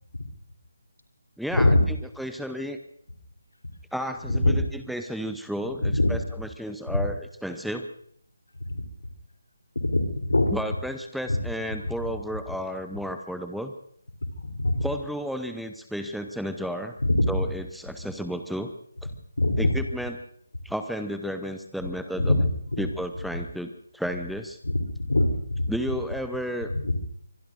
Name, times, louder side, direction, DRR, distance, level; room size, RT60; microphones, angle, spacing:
voice 1, 1.4-1.8 2.2-2.8 3.9-7.9 10.5-13.7 14.8-17.0 17.3-18.7 19.6-20.2 20.6-22.4 22.8-24.6 25.7-26.7, equal, ahead, 7 dB, 0.7 m, -32 dB
voice 2, 5.8-6.1 6.9-7.0 8.7-8.8 9.8-10.5 11.3-11.4 14.4-14.9 17.0-17.5 19.4-19.7 22.2-22.4 22.7-22.9 24.6-25.7 26.7-27.1, left 2 dB, 80° left, 5 dB, 3.4 m, -23 dB
24.5 x 22.0 x 2.6 m, 0.67 s
figure-of-eight pair, 155°, 0 cm